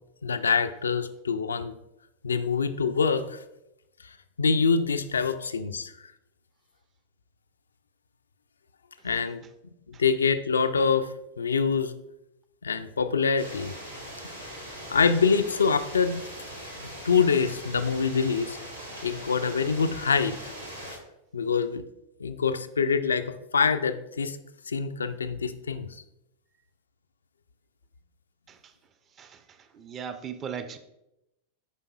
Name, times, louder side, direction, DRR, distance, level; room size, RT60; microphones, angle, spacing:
voice 1, 0.2-1.8 2.2-3.4 4.4-5.9 9.0-9.4 9.9-11.9 12.6-13.7 14.9-16.3 16.8-18.6 19.0-20.5 21.3-21.8 22.2-24.4 24.7-26.0, left 5 dB, 70° left, 0.3 m, -25 dB
sound 1, 13.4-21.0, equal, 90° right, 1.3 m, -41 dB
voice 2, 29.1-30.8, right 7 dB, 30° right, 0.5 m, -39 dB
8.2 x 5.2 x 2.3 m
figure-of-eight pair, 90°, 0 cm